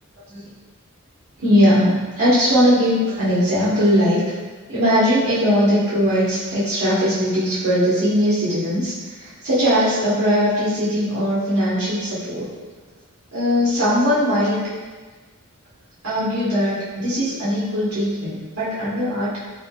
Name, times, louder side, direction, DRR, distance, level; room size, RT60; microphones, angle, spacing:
voice 1, 1.4-4.2 4.7-8.9 9.2-12.5 13.3-14.6 16.0-19.4, equal, 85° right, -11 dB, 1.1 m, -19 dB
3.5 x 2.2 x 2.3 m, 1.4 s
head